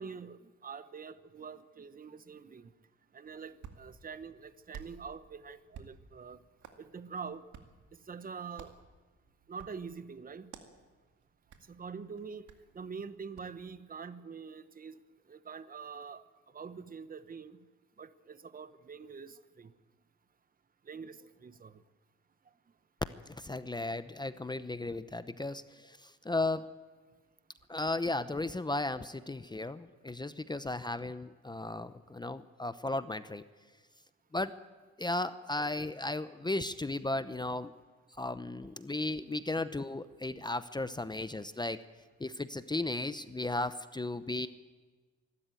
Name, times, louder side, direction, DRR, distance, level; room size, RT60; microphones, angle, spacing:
voice 1, 0.0-2.7 3.1-6.4 6.8-7.4 7.9-8.7 9.5-10.5 11.7-12.5 12.7-15.0 15.3-16.2 16.5-17.6 18.0-19.7 20.9-21.8, right 5 dB, 30° right, 13 dB, 1.0 m, -45 dB
Hands, 3.2-13.6, right 7 dB, 70° right, 2.2 m, -55 dB
voice 2, 23.3-26.7 27.7-33.4 34.3-34.5 35.0-37.7 38.2-41.8 42.2-44.5, left 2 dB, 15° left, 12 dB, 0.7 m, -35 dB
25.0 x 12.5 x 9.1 m, 1.3 s
cardioid pair, 90°, 30 cm